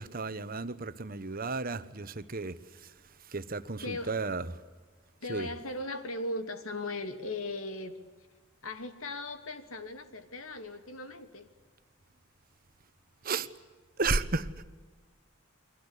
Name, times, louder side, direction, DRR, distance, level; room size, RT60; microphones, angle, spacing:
voice 1, 0.0-2.5 3.3-4.4 5.3-5.5 13.2-13.5 14.0-14.5, right 3 dB, 45° right, 13 dB, 1.2 m, -33 dB
voice 2, 3.8-4.2 5.2-8.0 8.6-11.5, left 2 dB, 90° left, 9 dB, 2.6 m, -38 dB
29.5 x 22.5 x 8.3 m, 1.3 s
head